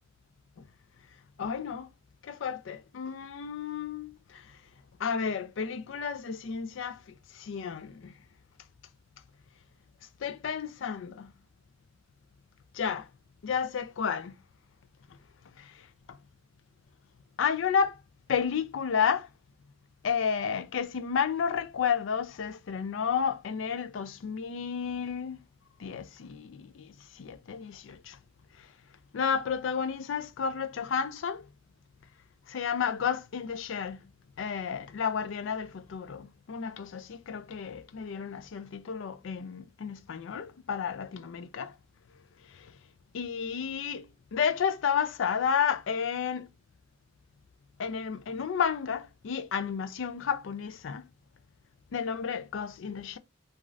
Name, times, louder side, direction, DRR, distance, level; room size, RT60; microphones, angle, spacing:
voice 1, 1.4-1.9 2.2-4.1 5.0-7.0 7.4-8.1 10.2-11.3 12.7-13.1 13.4-14.3 17.4-17.9 18.3-19.3 20.0-25.4 25.8-26.9 27.2-28.2 29.1-31.4 32.5-34.0 34.4-41.7 43.1-46.5 47.8-51.1 51.9-53.2, left 7 dB, 70° left, 0.4 m, -31 dB
3.1 x 2.5 x 2.4 m
head